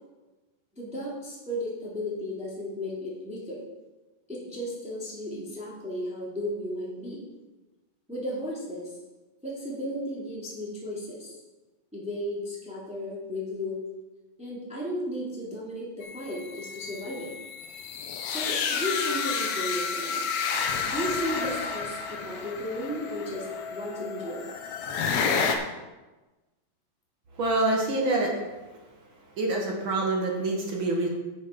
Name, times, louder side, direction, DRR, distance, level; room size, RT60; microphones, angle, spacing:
voice 1, 0.8-3.6 4.3-7.2 8.1-8.9 9.4-11.4 11.9-13.8 14.4-17.3 18.2-20.2 20.8-24.5, equal, ahead, -6 dB, 2.3 m, -34 dB
sound 1, 16.0-25.6, left 5 dB, 75° left, 1.6 m, -31 dB
voice 2, 27.4-28.3 29.4-31.1, right 2 dB, 50° right, -1 dB, 1.7 m, -26 dB
9.7 x 7.7 x 5.2 m, 1.1 s
omnidirectional pair, 4.3 m